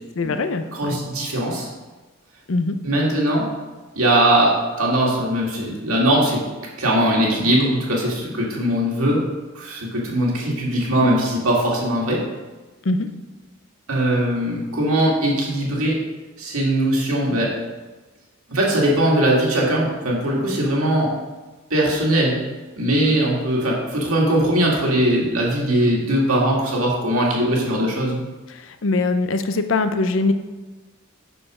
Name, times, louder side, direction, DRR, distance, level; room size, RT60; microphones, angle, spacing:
voice 1, 0.2-1.0 2.5-2.8 12.9-13.1 28.8-30.3, left 3 dB, 65° left, 9 dB, 0.6 m, -22 dB
voice 2, 0.7-1.7 2.8-3.4 3.9-6.4 6.8-9.2 9.5-12.2 13.9-16.0 16.4-17.5 18.5-21.1 21.7-22.4 22.8-28.2, right 1 dB, 90° right, -3 dB, 2.1 m, -20 dB
6.8 x 6.3 x 4.9 m, 1.2 s
head